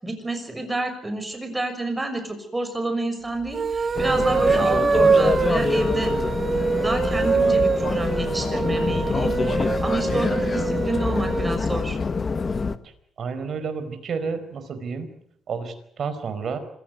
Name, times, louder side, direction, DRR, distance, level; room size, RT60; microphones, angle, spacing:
voice 1, 0.0-6.1 6.8-9.4 9.8-12.0, right 2 dB, 15° right, 8 dB, 6.3 m, -28 dB
sound 1, 3.4-11.6, right 5 dB, 40° right, 1.7 m, -24 dB
sound 2, 3.9-12.8, left 4 dB, 35° left, 1.4 m, -26 dB
voice 2, 13.2-15.1 15.5-16.6, right 5 dB, 55° right, 9 dB, 4.6 m, -30 dB
26.0 x 15.5 x 9.5 m, 0.70 s
cardioid pair, 90°, 0 cm